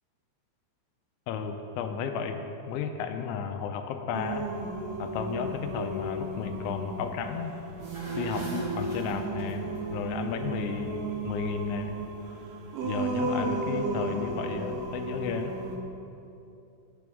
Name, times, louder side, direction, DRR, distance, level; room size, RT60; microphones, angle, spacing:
voice 1, 1.3-2.4 2.7-4.5 5.0-7.5 8.1-8.5 8.8-9.7 9.9-12.0 12.8-15.5, left 6 dB, 85° left, 6 dB, 2.9 m, -33 dB
Singing, 4.1-15.8, right 2 dB, 75° right, 2.1 m, -34 dB
sound 1, 7.7-9.8, left 1 dB, 40° right, 3.0 m, -41 dB
13.5 x 9.1 x 3.6 m, 2.8 s
omnidirectional pair, 5.4 m